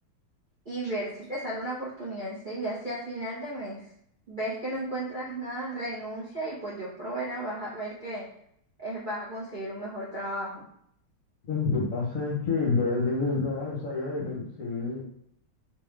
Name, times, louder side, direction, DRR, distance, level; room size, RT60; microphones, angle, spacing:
voice 1, 0.6-3.8 4.3-8.3 8.8-10.6, right 1 dB, 40° right, -8 dB, 0.7 m, -34 dB
voice 2, 11.5-15.0, left 4 dB, 50° left, -4 dB, 1.0 m, -28 dB
3.5 x 3.4 x 3.3 m, 0.71 s
omnidirectional pair, 2.3 m